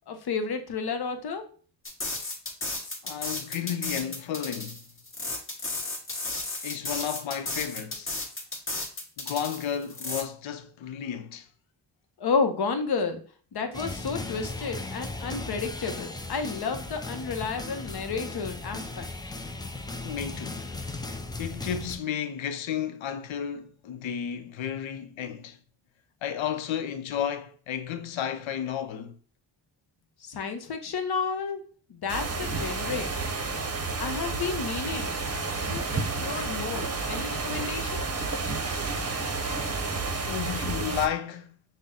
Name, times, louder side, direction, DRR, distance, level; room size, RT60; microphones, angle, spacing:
voice 1, 0.1-1.5 12.2-13.2 13.5-19.1 30.2-31.6 31.9-33.2 34.0-35.2 35.7-38.2, left 5 dB, 55° left, 0.8 m, -31 dB
sound 1, 1.8-10.2, left 2 dB, 25° left, 1.1 m, -34 dB
voice 2, 3.0-4.8 6.6-8.2 9.2-11.5 20.0-20.6 21.4-25.6 26.2-29.2 40.2-41.6, left 9 dB, 90° left, 0.6 m, -32 dB
sound 2, 13.7-22.0, left 2 dB, 10° left, 0.3 m, -37 dB
sound 3, 32.1-41.1, right 3 dB, 35° right, 0.7 m, -31 dB
5.6 x 2.1 x 3.6 m
wide cardioid pair, 95°, 45 cm